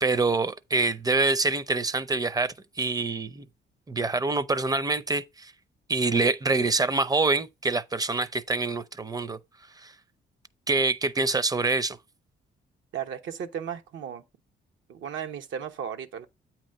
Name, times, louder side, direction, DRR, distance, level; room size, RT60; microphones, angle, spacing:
voice 1, 0.0-3.5 3.9-5.5 5.9-9.4 9.8-9.9 10.7-12.0, right 3 dB, 20° right, 0.6 m, -26 dB
voice 2, 12.9-14.2 14.9-16.3, right 8 dB, 75° right, 1.0 m, -35 dB
8.6 x 3.0 x 6.4 m
cardioid pair, 90°, 20 cm